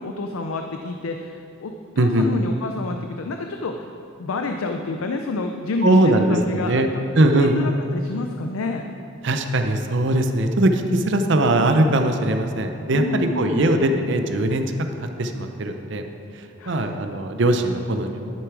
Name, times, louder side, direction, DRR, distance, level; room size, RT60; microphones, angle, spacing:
voice 1, 0.0-3.9 4.2-7.0 7.3-8.9 12.9-13.7 16.6-17.0, left 3 dB, 90° left, 5 dB, 0.5 m, -29 dB
voice 2, 2.0-2.3 5.8-6.9 7.1-7.5 9.2-13.0 13.4-14.6 15.0-16.1 16.7-18.3, right 1 dB, 60° right, 6 dB, 0.6 m, -20 dB
10.5 x 7.0 x 4.7 m, 2.7 s
head